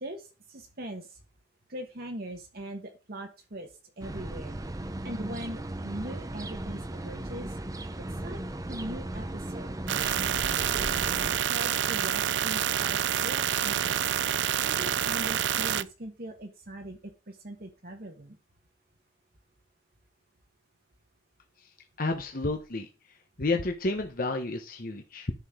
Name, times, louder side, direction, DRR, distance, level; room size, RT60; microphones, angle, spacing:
voice 1, 0.0-1.1 1.7-3.7 4.0-4.6 5.0-7.6 8.2-8.4 8.7-9.7 10.5-11.1 11.5-14.1 14.6-18.4, right 1 dB, 60° right, 3 dB, 1.4 m, -40 dB
Birds Chirp, 4.0-11.4, right 1 dB, 20° right, 0.7 m, -37 dB
sound 1, 9.9-15.8, right 9 dB, 90° right, 0.5 m, -28 dB
voice 2, 22.0-25.3, left 2 dB, 55° left, 4 dB, 1.1 m, -31 dB
11.0 x 6.2 x 3.7 m, 0.31 s
head